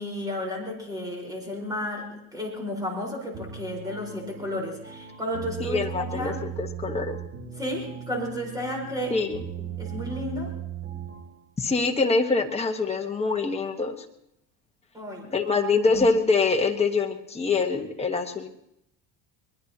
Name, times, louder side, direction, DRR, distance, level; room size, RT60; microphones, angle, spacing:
voice 1, 0.0-6.4 7.5-9.3 9.6-10.5 14.9-15.4, left 1 dB, 10° right, 0 dB, 4.6 m, -33 dB
sound 1, 3.3-11.4, right 9 dB, 25° right, 1.9 m, -38 dB
voice 2, 5.7-6.3 6.6-7.2 9.1-9.4 11.6-14.0 15.3-18.5, left 4 dB, 15° left, 3 dB, 1.3 m, -24 dB
23.0 x 21.0 x 2.9 m, 0.79 s
cardioid pair, 150°, 42 cm